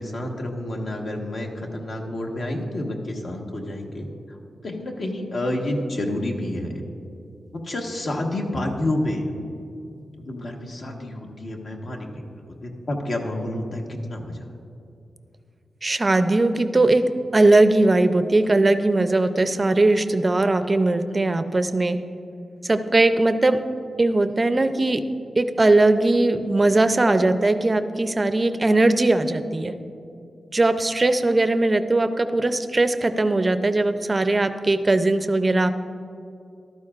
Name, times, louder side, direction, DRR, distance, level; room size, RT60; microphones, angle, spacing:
voice 1, 0.0-4.4 4.6-6.8 7.5-9.3 10.2-12.1 12.4-14.4, left 1 dB, 55° left, 1 dB, 1.3 m, -29 dB
voice 2, 15.8-17.0 17.3-22.0 22.6-23.6 24.0-25.0 25.4-29.7 30.5-35.7, right 2 dB, 25° right, 10 dB, 0.5 m, -19 dB
14.0 x 12.0 x 2.4 m, 2.6 s
wide cardioid pair, 125°, 0 cm